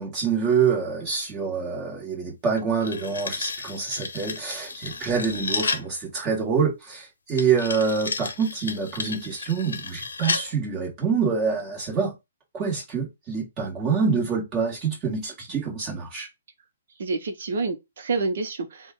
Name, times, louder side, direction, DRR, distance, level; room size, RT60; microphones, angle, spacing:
voice 1, 0.0-12.1 12.5-16.3, right 5 dB, 25° right, 1.9 m, -26 dB
sound 1, 2.6-5.9 7.4-10.5, left 4 dB, 90° left, 0.7 m, -32 dB
voice 2, 17.0-18.9, right 3 dB, 65° right, 0.9 m, -28 dB
3.6 x 2.4 x 3.8 m
hypercardioid pair, 145°, 0 cm